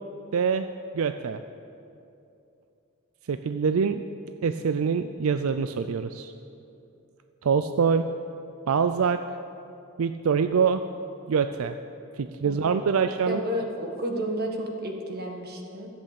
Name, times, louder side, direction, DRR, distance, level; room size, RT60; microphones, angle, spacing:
voice 1, 0.3-0.7 0.9-1.4 3.3-4.0 4.4-6.3 7.4-8.1 8.7-9.2 10.0-10.8 11.3-11.8 12.2-13.4, right 6 dB, 80° right, 9 dB, 0.4 m, -24 dB
voice 2, 12.4-15.9, equal, 45° right, 2 dB, 1.6 m, -32 dB
14.0 x 8.1 x 8.4 m, 2.7 s
head